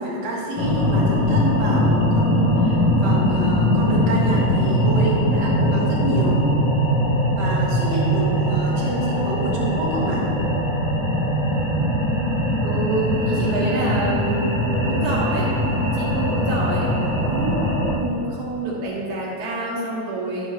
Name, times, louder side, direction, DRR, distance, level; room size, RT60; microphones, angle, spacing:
voice 1, 0.0-6.4 7.3-10.3, right 1 dB, 55° right, -5 dB, 2.6 m, -27 dB
sound 1, 0.6-18.0, equal, 70° left, 1.0 m, -21 dB
voice 2, 12.6-15.5 15.9-16.9 17.2-20.5, right 2 dB, 70° right, -7 dB, 2.0 m, -27 dB
11.5 x 7.9 x 3.0 m, 2.7 s
omnidirectional pair, 5.0 m